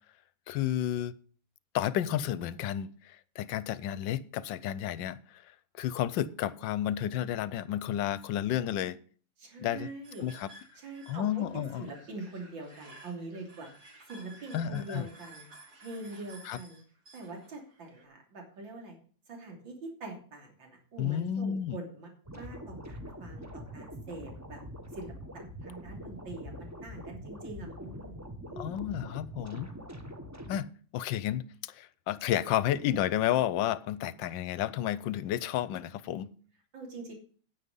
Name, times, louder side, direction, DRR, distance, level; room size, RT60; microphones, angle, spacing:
voice 1, 0.5-1.1 1.7-5.2 5.8-9.0 9.6-9.9 10.2-10.5 11.1-11.9 14.5-15.1 16.4-16.6 21.0-21.8 28.6-29.7 30.5-30.7 30.9-36.3, left 11 dB, 75° left, 1.4 m, -31 dB
voice 2, 9.4-10.3 10.8-13.7 14.1-15.5 15.8-16.8 17.1-19.0 19.3-24.6 24.9-28.7 36.7-37.1, right 2 dB, 70° right, 3.7 m, -44 dB
sound 1, 10.0-18.1, right 2 dB, 45° right, 2.8 m, -54 dB
sound 2, 22.3-30.6, equal, 10° right, 1.1 m, -44 dB
9.9 x 9.1 x 5.4 m
omnidirectional pair, 2.1 m